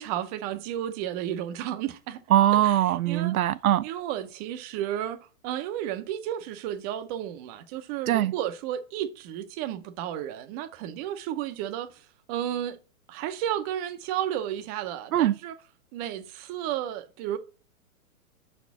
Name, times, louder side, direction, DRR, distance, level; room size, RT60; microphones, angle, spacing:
voice 1, 0.0-2.2 3.1-3.3 3.8-5.2 5.4-12.0 12.3-12.8 13.1-15.5 15.9-17.4, right 11 dB, 25° right, 0.7 m, -32 dB
voice 2, 2.3-3.9 8.1-8.3 15.1-15.3, right 12 dB, 75° right, 0.5 m, -21 dB
5.9 x 4.2 x 5.7 m
hypercardioid pair, 135°, 43 cm